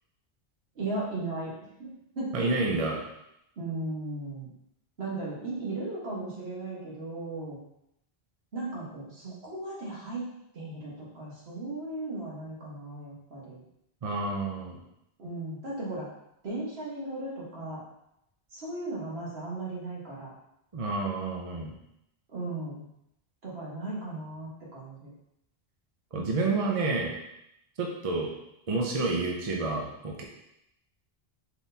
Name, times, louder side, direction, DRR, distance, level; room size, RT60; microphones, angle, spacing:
voice 1, 0.7-1.5 1.8-1.9 2.1-2.5 3.6-4.5 5.0-7.6 8.5-10.3 10.5-13.6 15.2-16.1 16.4-17.8 18.5-20.3 22.3-22.9 23.4-25.1, right 2 dB, 80° right, -6 dB, 1.6 m, -36 dB
voice 2, 2.3-3.0 14.0-14.8 20.7-21.7 26.1-27.2 27.8-28.3 28.7-30.2, right 3 dB, 40° right, 0 dB, 0.6 m, -29 dB
4.6 x 3.8 x 2.7 m, 0.80 s
omnidirectional pair, 1.0 m